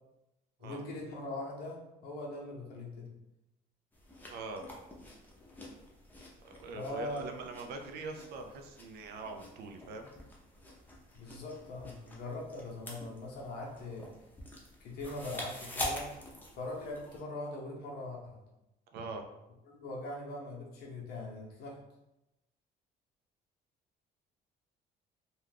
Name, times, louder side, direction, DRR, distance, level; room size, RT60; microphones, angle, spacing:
voice 1, 0.6-3.2 6.7-7.2 11.1-14.1 14.8-16.1 16.6-18.4 19.7-21.8, left 2 dB, 70° left, -2 dB, 0.7 m, -41 dB
sound 1, 3.9-17.2, left 1 dB, 10° left, 0.6 m, -46 dB
voice 2, 4.3-4.7 6.4-10.1 18.9-19.2, right 3 dB, 75° right, 4 dB, 0.5 m, -43 dB
2.5 x 2.3 x 3.4 m, 0.94 s
cardioid pair, 110°, 17 cm